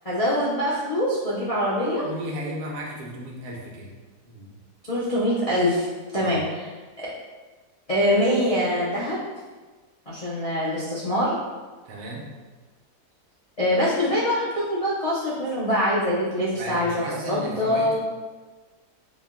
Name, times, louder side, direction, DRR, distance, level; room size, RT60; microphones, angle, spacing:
voice 1, 0.0-2.0 4.9-5.9 6.1-6.4 7.9-9.2 10.1-11.4 13.6-18.0, equal, 70° left, -9 dB, 0.3 m, -24 dB
voice 2, 2.0-3.9 4.2-4.6 6.2-6.5 11.8-12.3 16.5-18.0, right 1 dB, 75° right, -1 dB, 1.2 m, -35 dB
4.1 x 2.2 x 3.5 m, 1.3 s
omnidirectional pair, 1.8 m